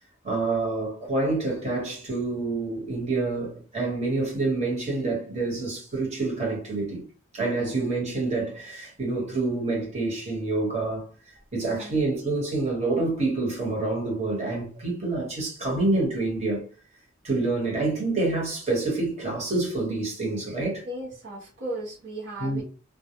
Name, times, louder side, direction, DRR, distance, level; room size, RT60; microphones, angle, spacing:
voice 1, 0.2-7.0 7.3-16.7 17.2-20.9 22.4-22.6, right 3 dB, 35° right, 1.1 m, -27 dB
voice 2, 7.6-7.9 11.6-12.0 20.8-22.6, right 1 dB, 60° right, 0.8 m, -36 dB
2.2 x 2.1 x 2.8 m
head